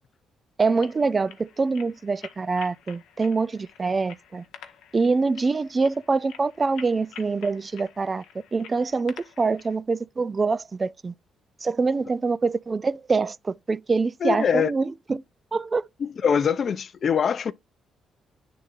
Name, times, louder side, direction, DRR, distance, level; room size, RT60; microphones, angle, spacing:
sound 1, 0.6-9.8, left 9 dB, 85° left, 0.9 m, -48 dB
voice 1, 0.6-4.4 4.9-8.2 8.5-11.1 11.6-15.2 15.5-15.9, right 4 dB, 30° right, 0.4 m, -25 dB
voice 2, 14.2-14.7 16.0-17.5, left 7 dB, 50° left, 0.4 m, -23 dB
10.0 x 3.8 x 2.5 m
cardioid pair, 90°, 0 cm